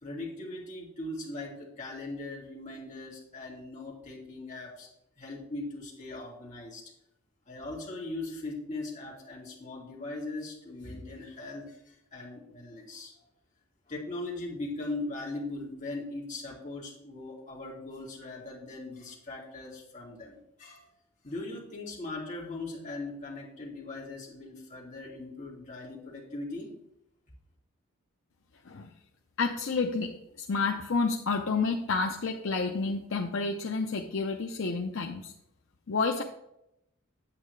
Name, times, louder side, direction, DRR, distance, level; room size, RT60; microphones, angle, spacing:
voice 1, 0.0-4.9 5.2-6.8 7.5-13.1 13.9-20.9 21.2-26.7, left 2 dB, 35° left, -4 dB, 2.3 m, -40 dB
voice 2, 29.4-30.1 30.5-35.3 35.9-36.2, left 4 dB, 55° left, 1 dB, 0.6 m, -29 dB
8.7 x 8.1 x 3.2 m, 0.81 s
head